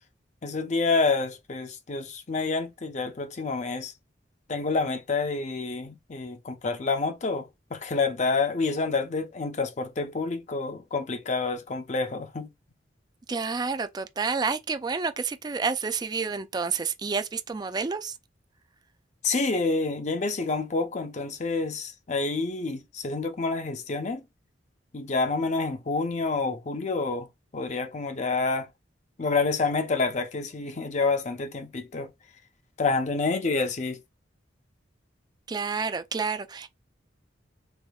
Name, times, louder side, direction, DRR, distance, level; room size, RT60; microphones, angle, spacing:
voice 1, 0.4-3.9 4.5-7.5 7.7-12.5 19.2-24.2 24.9-27.3 27.5-28.7 29.2-32.1 32.8-34.0, left 3 dB, 40° left, 0.6 m, -28 dB
voice 2, 13.3-18.2 35.5-36.7, right 5 dB, 20° right, 0.4 m, -29 dB
3.5 x 3.4 x 2.3 m
head